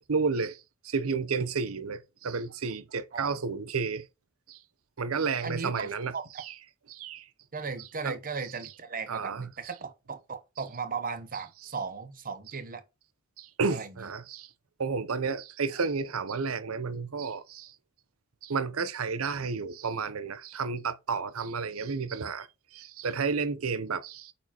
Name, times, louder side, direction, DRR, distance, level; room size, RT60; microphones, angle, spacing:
voice 1, 0.1-0.6 0.8-4.0 4.5-4.6 5.0-6.5 6.9-7.2 8.0-8.2 9.1-9.5 13.4-14.5 14.8-17.7 18.4-22.5 22.7-24.3, right 5 dB, 85° right, 0.7 m, -31 dB
voice 2, 5.4-6.2 7.5-12.8 13.7-14.1, right 5 dB, 40° right, 0.9 m, -37 dB
8.6 x 4.3 x 2.9 m
head